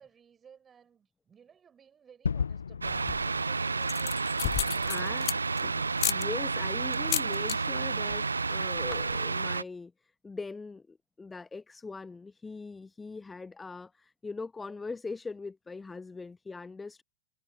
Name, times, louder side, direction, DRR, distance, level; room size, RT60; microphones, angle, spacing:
voice 1, 0.0-4.2, right 7 dB, 20° right, 7.0 m, -56 dB
Gunshot gunfire / Fireworks / Boom, 2.2-7.0, left 6 dB, 70° left, 0.5 m, -38 dB
sound 1, 2.8-9.6, right 4 dB, 80° right, 0.4 m, -31 dB
sound 2, 2.9-3.4 3.8-5.6 6.0-6.2 6.9-7.6 7.9-8.2 8.4-8.5 8.7-9.2, left 23 dB, 40° left, 0.8 m, -32 dB
voice 2, 4.8-17.0, left 4 dB, 10° left, 0.5 m, -41 dB
figure-of-eight pair, 90°, 0 cm